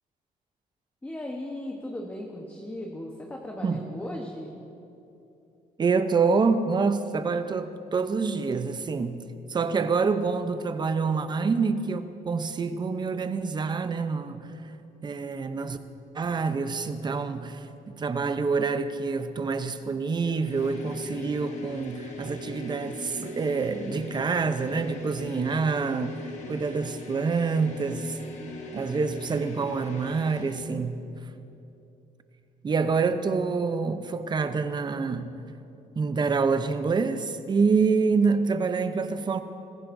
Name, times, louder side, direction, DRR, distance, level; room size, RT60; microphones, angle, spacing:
voice 1, 1.0-4.5, left 1 dB, 10° left, 1.0 m, -37 dB
voice 2, 5.8-9.2 9.5-14.5 15.0-15.8 16.1-28.2 28.7-31.0 32.6-35.4 36.0-39.4, right 4 dB, 30° right, 0.6 m, -27 dB
sound 1, 20.4-30.7, left 2 dB, 50° left, 1.5 m, -41 dB
22.0 x 15.0 x 2.6 m
cardioid pair, 135°, 15 cm